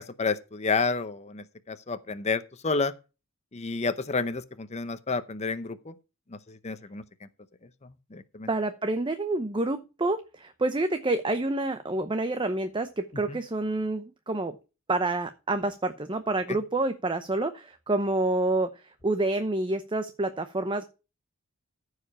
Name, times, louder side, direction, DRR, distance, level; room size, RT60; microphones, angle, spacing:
voice 1, 0.2-2.9 3.5-5.9 6.3-7.0 8.1-8.5 13.3-13.4 16.5-16.6, left 4 dB, 35° left, 0.7 m, -30 dB
voice 2, 8.5-14.5 14.9-18.7 19.0-20.8, right 2 dB, 25° right, 0.7 m, -28 dB
14.5 x 4.9 x 5.5 m
head